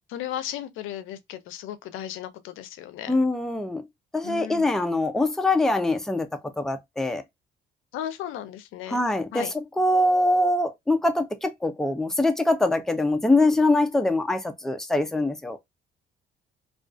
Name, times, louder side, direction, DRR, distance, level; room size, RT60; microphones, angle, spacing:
voice 1, 0.1-3.2 4.2-4.8 7.9-9.0 9.3-9.5, left 11 dB, 85° left, 0.5 m, -35 dB
voice 2, 3.1-3.9 4.1-6.3 6.6-7.2 8.9-15.6, left 2 dB, ahead, 0.4 m, -23 dB
2.4 x 2.3 x 2.3 m
cardioid pair, 90°, 20 cm